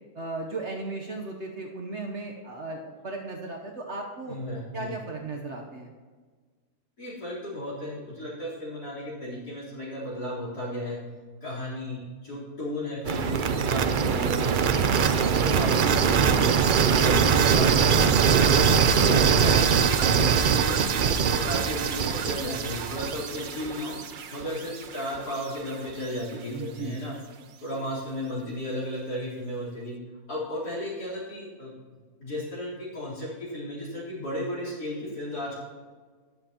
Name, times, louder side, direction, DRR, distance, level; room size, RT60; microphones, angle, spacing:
voice 1, 0.1-4.4 4.7-5.9 26.5-27.0, right 3 dB, 50° right, 0 dB, 1.2 m, -36 dB
voice 2, 4.3-4.9 7.0-11.0 11.4-14.7 15.1-18.0 18.4-18.7 19.0-24.0 24.3-27.1 27.6-29.9 30.3-31.7 32.2-35.6, left 1 dB, 85° left, -7 dB, 4.3 m, -34 dB
sound 1, 13.0-25.0, right 6 dB, 85° right, 0.4 m, -22 dB
21.0 x 7.7 x 2.9 m, 1.5 s
omnidirectional pair, 1.6 m